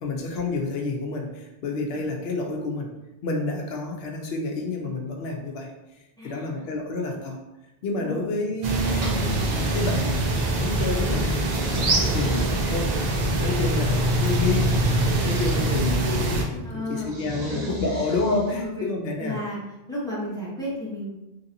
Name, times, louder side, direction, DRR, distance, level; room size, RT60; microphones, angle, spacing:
voice 1, 0.0-2.9 3.2-5.7 6.2-7.4 7.8-11.3 12.1-14.7 15.2-19.4, left 3 dB, 75° left, 1 dB, 0.8 m, -29 dB
voice 2, 6.2-6.7 8.0-8.2 16.6-17.7 18.5-18.7 19.2-19.6 19.9-21.1, left 1 dB, 5° left, -8 dB, 0.9 m, -34 dB
sound 1, 8.6-16.4, right 2 dB, 55° right, 0.5 m, -24 dB
sound 2, 8.8-10.5 11.1-13.1 14.0-15.8 17.0-18.6, equal, 80° right, 1.1 m, -35 dB
sound 3, 12.8-13.3 15.3-15.4 15.8-17.5 18.3-18.7, left 1 dB, 40° left, 1.2 m, -44 dB
3.1 x 2.7 x 2.6 m, 0.98 s
omnidirectional pair, 1.1 m